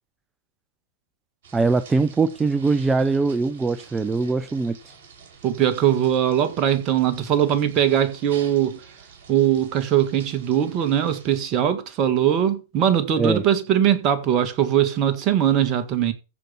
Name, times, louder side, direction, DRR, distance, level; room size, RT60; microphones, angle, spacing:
sound 1, 1.4-11.4, right 6 dB, 55° right, 5.4 m, -48 dB
voice 1, 1.5-4.9 13.2-13.4, right 4 dB, 10° right, 0.6 m, -22 dB
voice 2, 5.4-8.8 9.3-16.1, right 10 dB, 35° right, 1.9 m, -21 dB
15.0 x 5.2 x 5.8 m
figure-of-eight pair, 105°, 0 cm